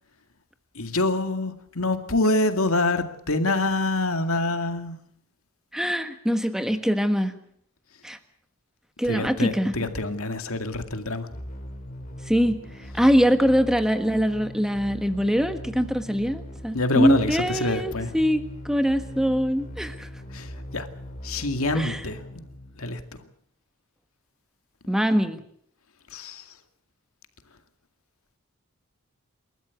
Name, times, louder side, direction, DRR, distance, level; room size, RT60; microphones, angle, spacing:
voice 1, 0.7-5.0 9.0-11.3 16.7-18.2 20.3-20.9 21.2-22.2 22.8-23.2 26.1-26.5, left 2 dB, 80° left, 7 dB, 2.2 m, -26 dB
voice 2, 5.7-7.3 8.0-8.2 9.0-9.7 12.3-12.6 12.9-20.1 21.7-22.0 24.9-25.4, equal, ahead, 9 dB, 1.4 m, -23 dB
sound 1, 11.3-23.2, left 1 dB, 40° left, 3.1 m, -40 dB
28.5 x 13.5 x 8.3 m, 0.67 s
head